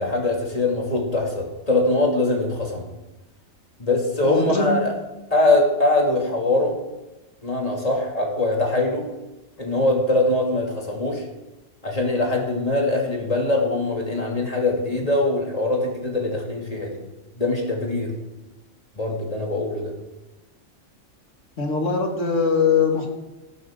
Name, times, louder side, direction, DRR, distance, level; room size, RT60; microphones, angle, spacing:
voice 1, 0.0-2.9 3.8-5.0 5.3-6.8 7.4-9.1 9.6-11.2 11.8-17.0 17.4-18.1 19.0-19.9, left 2 dB, 30° left, -1 dB, 2.8 m, -22 dB
voice 2, 4.3-4.8 21.6-23.1, left 5 dB, 70° left, 2 dB, 2.3 m, -21 dB
15.5 x 12.0 x 3.8 m, 1.0 s
omnidirectional pair, 1.3 m